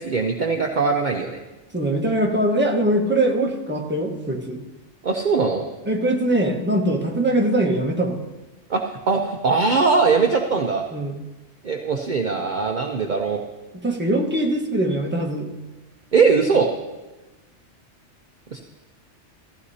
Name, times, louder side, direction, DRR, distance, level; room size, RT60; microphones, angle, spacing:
voice 1, 0.0-1.4 5.0-5.7 8.7-10.8 11.6-13.4 16.1-16.7 18.5-18.6, right 4 dB, 45° right, 2 dB, 0.8 m, -21 dB
voice 2, 1.7-4.6 5.9-8.2 10.9-11.2 13.8-15.5, right 1 dB, 10° right, 0 dB, 1.1 m, -22 dB
15.5 x 14.5 x 2.8 m, 1.1 s
omnidirectional pair, 1.2 m